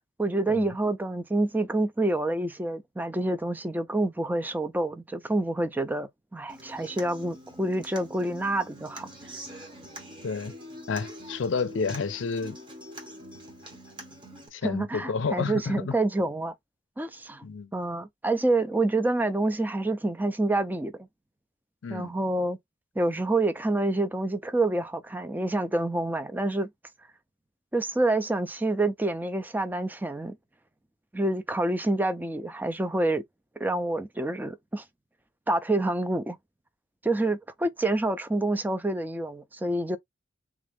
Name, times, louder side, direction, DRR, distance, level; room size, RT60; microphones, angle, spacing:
voice 1, 0.2-9.1 14.6-16.5 17.0-17.4 17.7-20.9 21.9-22.6 23.0-26.7 27.7-30.4 31.1-33.2 33.6-34.8 35.5-36.4 37.0-40.0, right 2 dB, 10° right, 0.4 m, -27 dB
Human voice / Acoustic guitar, 6.5-14.5, equal, 25° right, 0.8 m, -44 dB
voice 2, 10.9-12.6 14.5-16.0 17.4-17.7 21.8-22.1, left 5 dB, 70° left, 0.5 m, -30 dB
3.5 x 2.4 x 3.4 m
head